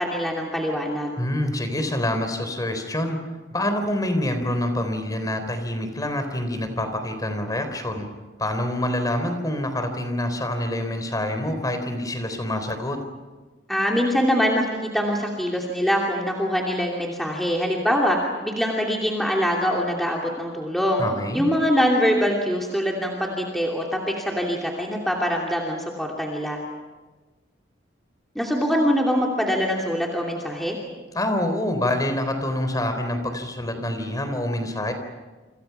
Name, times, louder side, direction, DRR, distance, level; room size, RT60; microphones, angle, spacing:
voice 1, 0.0-1.1 13.7-21.0 21.3-26.6 28.3-30.8, equal, ahead, -1 dB, 2.8 m, -23 dB
voice 2, 1.2-3.2 3.5-8.1 8.4-13.0 21.0-21.5 31.1-34.9, left 1 dB, 20° left, 7 dB, 3.8 m, -26 dB
29.0 x 26.5 x 5.9 m, 1.3 s
head